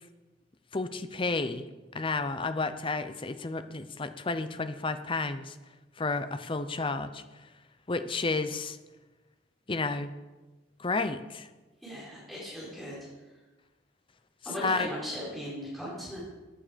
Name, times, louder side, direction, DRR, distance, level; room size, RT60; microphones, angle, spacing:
voice 1, 0.7-1.7 1.9-5.6 6.0-7.2 7.9-8.8 9.7-10.1 10.8-11.5 14.6-14.9, left 3 dB, 25° left, 11 dB, 0.6 m, -31 dB
voice 2, 11.8-13.0 14.4-16.2, equal, ahead, -8 dB, 4.4 m, -38 dB
14.5 x 9.6 x 5.1 m, 1.2 s
head